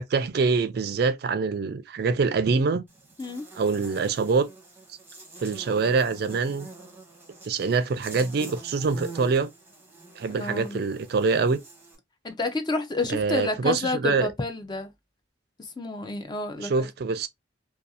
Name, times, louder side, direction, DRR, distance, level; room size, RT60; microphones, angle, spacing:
voice 1, 0.0-2.8 3.5-4.5 5.4-6.7 7.4-9.5 10.2-11.6 13.1-14.3 16.6-17.3, right 4 dB, 55° right, 0.3 m, -25 dB
Buzz, 2.9-11.9, right 2 dB, 10° right, 0.8 m, -45 dB
voice 2, 10.3-10.8 12.2-14.9 15.6-16.9, left 2 dB, 20° left, 0.4 m, -30 dB
2.5 x 2.3 x 2.6 m
head